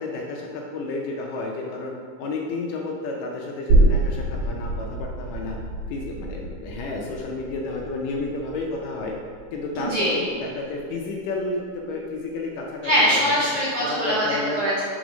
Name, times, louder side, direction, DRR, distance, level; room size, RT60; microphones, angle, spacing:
voice 1, 0.0-5.6 5.9-9.1 9.5-13.2 13.8-14.6, left 3 dB, 80° left, 0 dB, 2.0 m, -31 dB
sound 1, 3.7-11.0 11.3-11.4, right 2 dB, 85° right, 3.0 m, -26 dB
voice 2, 9.7-10.2 12.8-14.8, equal, 65° right, -9 dB, 1.4 m, -22 dB
6.1 x 4.3 x 5.0 m, 2.1 s
omnidirectional pair, 4.3 m